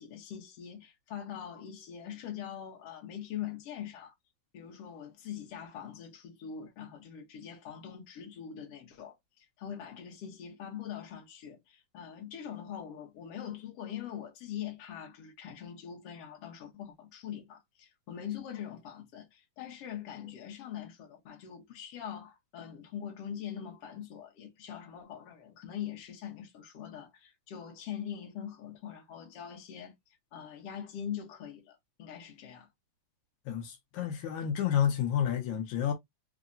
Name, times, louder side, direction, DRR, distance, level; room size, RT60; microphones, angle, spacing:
voice 1, 0.0-4.1 4.5-29.9 30.3-32.7, left 9 dB, 55° left, 2.1 m, -43 dB
voice 2, 33.5-35.9, left 9 dB, 80° left, 2.3 m, -30 dB
4.9 x 3.0 x 2.4 m
omnidirectional pair, 3.4 m